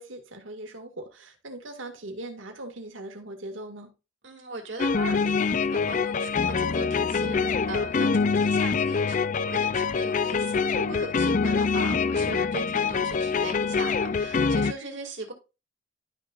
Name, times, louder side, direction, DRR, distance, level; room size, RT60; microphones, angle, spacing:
voice 1, 0.0-3.9, right 1 dB, 90° right, 2.1 m, -40 dB
voice 2, 4.2-15.3, right 3 dB, 70° right, 2.6 m, -38 dB
sound 1, 4.8-14.7, left 5 dB, 40° left, 0.4 m, -25 dB
12.0 x 6.3 x 2.5 m
head